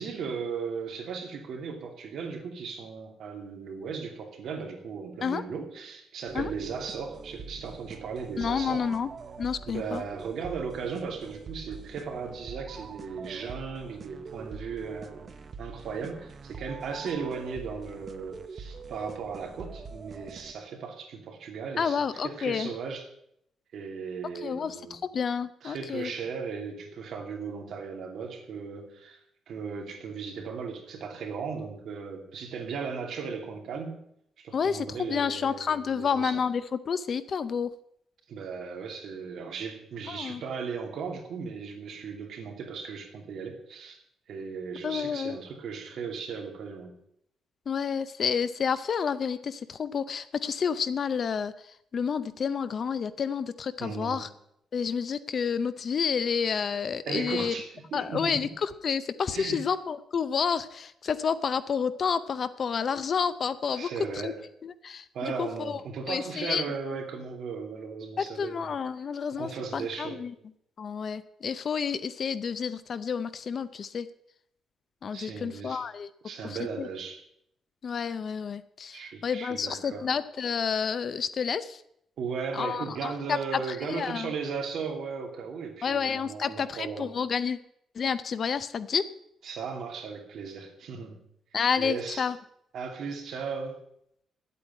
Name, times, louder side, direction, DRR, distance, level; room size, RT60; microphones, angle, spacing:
voice 1, 0.0-8.9 9.7-23.1 23.7-25.0 25.6-29.2 29.5-34.0 34.4-36.4 38.3-44.0 44.3-47.0 53.8-54.3 57.0-58.5 59.3-59.7 63.7-64.5 65.1-68.8 69.3-70.2 75.1-75.8 76.2-77.2 78.9-80.1 82.2-87.1 89.4-91.2 91.8-92.3 92.7-93.8, right 5 dB, 55° right, 3 dB, 2.8 m, -37 dB
sound 1, 6.3-20.5, right 5 dB, 30° right, 0.7 m, -44 dB
voice 2, 8.4-9.1 9.4-10.0 21.8-22.7 24.4-26.1 34.5-37.7 40.1-40.4 44.8-45.4 47.7-51.5 51.9-54.3 54.7-57.5 57.9-63.9 64.2-64.3 64.8-65.0 65.4-65.8 66.1-66.6 68.2-70.3 70.8-74.1 75.0-76.1 76.8-76.9 77.8-81.8 82.5-83.6 83.9-84.3 85.8-87.6 88.0-89.0 91.5-92.3, left 6 dB, 35° left, 14 dB, 0.6 m, -29 dB
10.5 x 8.5 x 9.0 m, 0.72 s
cardioid pair, 175°, 0 cm